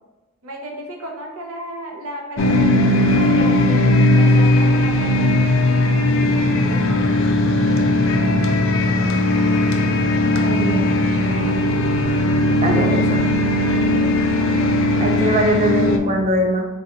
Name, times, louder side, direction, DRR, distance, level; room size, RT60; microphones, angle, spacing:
voice 1, 0.4-5.4 6.3-7.2 10.2-11.0 12.8-13.2 13.9-14.1 14.4-14.8, equal, 80° right, 0 dB, 0.7 m, -35 dB
sound 1, 2.4-16.0, left 1 dB, 60° left, 0.4 m, -17 dB
voice 2, 10.4-10.9 12.6-13.3 15.0-16.7, right 1 dB, 25° right, 1 dB, 0.4 m, -21 dB
3.9 x 2.3 x 2.7 m, 1.1 s
head